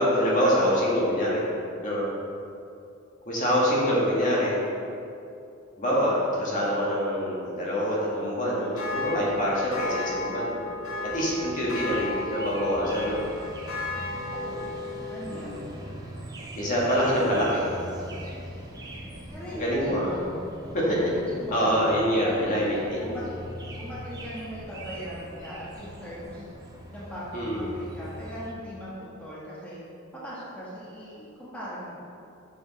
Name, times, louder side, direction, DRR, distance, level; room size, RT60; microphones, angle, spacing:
voice 1, 0.0-1.4 1.8-2.1 3.2-4.6 5.8-10.6 11.0-13.2 15.3-15.6 16.6-17.7 19.5-20.1 20.7-21.0 21.5-23.2 27.3-27.7, equal, 40° left, -6 dB, 1.5 m, -25 dB
sound 1, 8.7-15.4, left 2 dB, 80° left, 1.4 m, -34 dB
sound 2, 11.0-28.5, right 1 dB, 20° right, 0.8 m, -42 dB
voice 2, 14.1-14.7 15.1-15.7 19.3-20.2 21.0-21.9 22.2-22.7 23.0-23.4 23.8-26.4 26.9-29.8 30.2-31.9, equal, 5° left, -9 dB, 1.2 m, -39 dB
6.9 x 4.9 x 4.0 m, 2.6 s
head